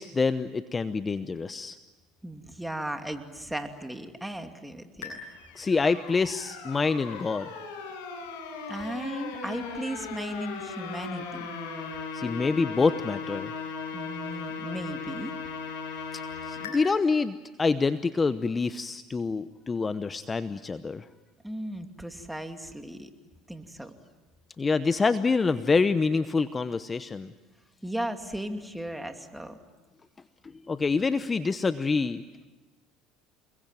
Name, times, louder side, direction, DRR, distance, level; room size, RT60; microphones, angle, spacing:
voice 1, 0.0-1.8 5.5-7.5 12.1-13.5 16.4-21.1 24.6-27.3 30.7-32.2, left 4 dB, 25° left, 13 dB, 0.9 m, -26 dB
voice 2, 2.2-5.2 8.7-11.5 13.9-15.3 21.4-23.1 23.5-23.9 27.8-29.6, right 1 dB, 5° right, 6 dB, 2.7 m, -36 dB
sound 1, 5.0-16.7, left 5 dB, 75° left, 7.8 m, -37 dB
29.0 x 21.0 x 9.2 m, 1.2 s
supercardioid pair, 85°, 0 cm